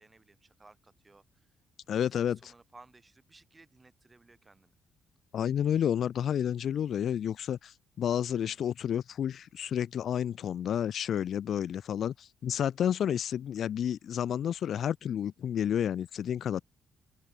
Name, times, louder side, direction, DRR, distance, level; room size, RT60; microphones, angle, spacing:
voice 1, 0.0-1.5 1.9-4.7, right 3 dB, 20° right, 6.3 m, -59 dB
voice 2, 1.9-2.5 5.3-16.6, left 9 dB, 65° left, 0.6 m, -30 dB
open air
cardioid pair, 90°, 0 cm